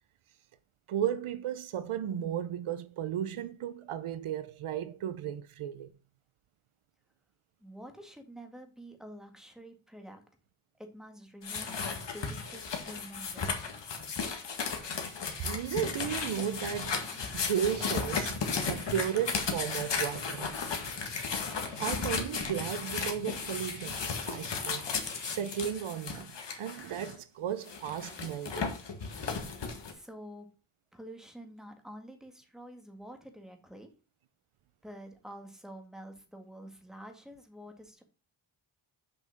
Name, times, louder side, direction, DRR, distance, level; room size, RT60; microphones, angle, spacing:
voice 1, 0.9-5.9 15.4-17.0 17.3-18.4 18.7-20.6 21.8-24.9 25.2-28.8, right 9 dB, 90° right, 0.8 m, -34 dB
voice 2, 7.6-10.3 10.8-13.7 29.6-30.5 30.9-33.9 34.8-38.0, equal, ahead, 1.9 m, -48 dB
sound 1, 11.4-27.1 27.7-29.9, left 5 dB, 60° left, 1.9 m, -35 dB
Guitar, 15.8-25.6, right 1 dB, 40° right, 3.6 m, -49 dB
7.0 x 5.6 x 6.4 m
wide cardioid pair, 115°, 48 cm